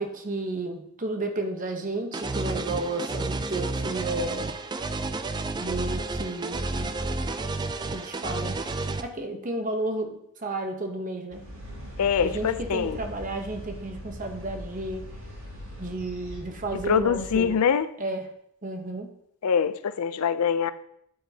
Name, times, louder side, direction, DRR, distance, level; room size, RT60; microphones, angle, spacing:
voice 1, 0.0-4.6 5.6-7.0 7.9-8.7 8.9-11.4 12.2-15.1 15.8-17.6 18.0-18.3 18.6-19.1, right 2 dB, 35° right, 5 dB, 0.9 m, -32 dB
sound 1, 2.1-9.0, right 3 dB, 20° right, 0.3 m, -31 dB
sound 2, 11.3-17.5, equal, 65° right, 2.7 m, -40 dB
voice 2, 12.0-13.0 16.9-17.9 19.4-20.7, left 7 dB, 85° left, 13 dB, 0.4 m, -24 dB
9.3 x 8.2 x 2.8 m, 0.74 s
head